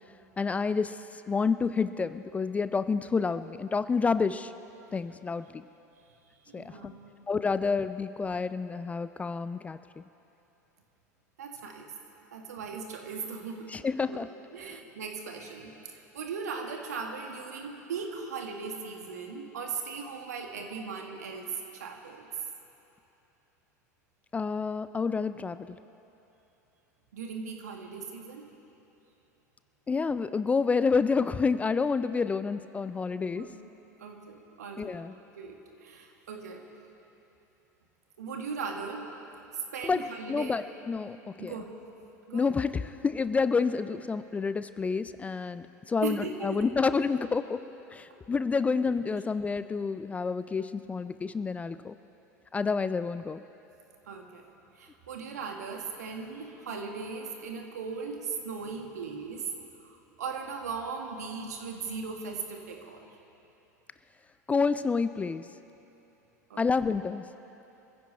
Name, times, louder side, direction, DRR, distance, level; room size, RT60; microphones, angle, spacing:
voice 1, 0.4-1.0 1.3-4.5 4.9-5.6 6.5-6.9 7.3-10.0 13.7-14.3 14.6-14.8 24.3-25.8 29.9-33.5 34.8-35.2 39.8-40.0 40.3-41.5 42.3-47.6 47.9-51.9 52.5-53.4 64.5-65.5 66.6-67.2, left 5 dB, 15° left, 13 dB, 0.4 m, -29 dB
voice 2, 6.5-7.1 11.4-11.9 12.3-13.7 14.1-14.2 14.5-15.7 16.1-22.3 27.1-28.5 33.3-33.5 34.0-35.0 35.4-36.6 38.2-39.1 39.7-40.6 41.4-41.7 42.3-42.6 46.0-46.7 54.1-54.4 54.8-59.4 59.8-63.1 66.5-66.6, right 5 dB, 70° right, 3 dB, 1.8 m, -38 dB
26.5 x 15.5 x 3.3 m, 3.0 s
figure-of-eight pair, 80°, 9 cm